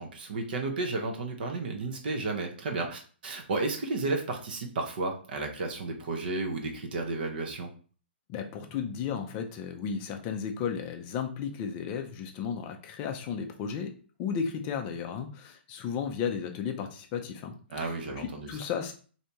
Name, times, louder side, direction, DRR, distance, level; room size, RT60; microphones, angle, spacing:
voice 1, 0.0-7.7 17.7-18.6, right 3 dB, 50° right, 3 dB, 0.8 m, -33 dB
voice 2, 8.3-13.9 14.2-17.5 17.8-17.9 18.2-18.9, left 7 dB, 25° left, 5 dB, 0.4 m, -34 dB
3.3 x 2.7 x 2.7 m, 0.41 s
hypercardioid pair, 160°, 6 cm